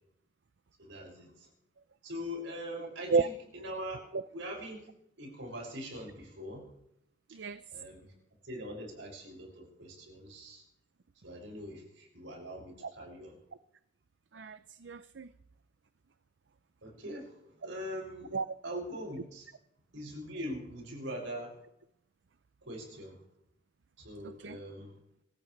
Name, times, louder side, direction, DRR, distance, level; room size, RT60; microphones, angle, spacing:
voice 1, 0.8-1.5 2.0-4.0 4.3-4.9 5.2-6.7 7.7-8.1 8.4-10.6 11.2-13.4 16.8-17.3 17.6-18.4 18.6-19.5 19.9-21.6 22.7-23.2 24.0-24.9, equal, 85° right, 0 dB, 6.5 m, -42 dB
voice 2, 7.3-7.6 12.8-12.9 14.3-15.3 18.3-18.5 24.2-24.6, right 4 dB, 65° right, 13 dB, 0.6 m, -32 dB
26.5 x 14.5 x 3.3 m, 0.77 s
head